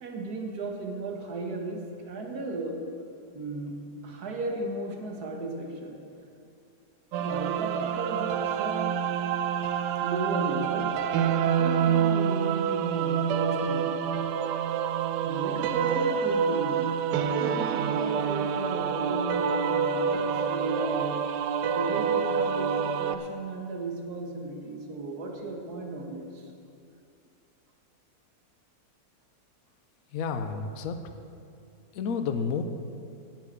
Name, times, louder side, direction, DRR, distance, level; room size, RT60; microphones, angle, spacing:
voice 1, 0.0-2.9 3.3-6.0 7.2-9.1 10.0-11.1 11.6-14.0 15.2-17.0 17.4-21.2 21.7-26.5, right 2 dB, 65° right, 2 dB, 1.8 m, -35 dB
sound 1, 7.1-23.2, right 7 dB, 85° right, 1.2 m, -27 dB
voice 2, 30.1-31.0 31.9-32.6, left 6 dB, 65° left, 8 dB, 1.1 m, -30 dB
9.1 x 7.6 x 8.6 m, 2.5 s
omnidirectional pair, 1.8 m